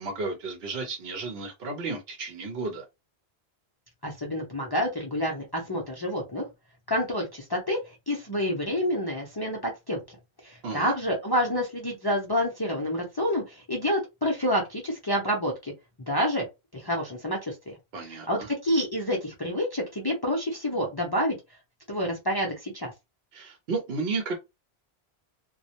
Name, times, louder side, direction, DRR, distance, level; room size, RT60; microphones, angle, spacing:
voice 1, 0.0-2.8 10.6-10.9 17.9-18.5 23.3-24.4, right 3 dB, 65° right, 0.9 m, -33 dB
voice 2, 4.0-6.4 6.9-7.8 8.1-10.2 10.4-15.7 16.0-16.5 16.7-17.8 18.3-21.4 21.9-22.9, equal, 30° left, 0.5 m, -28 dB
2.3 x 2.0 x 2.7 m
omnidirectional pair, 1.1 m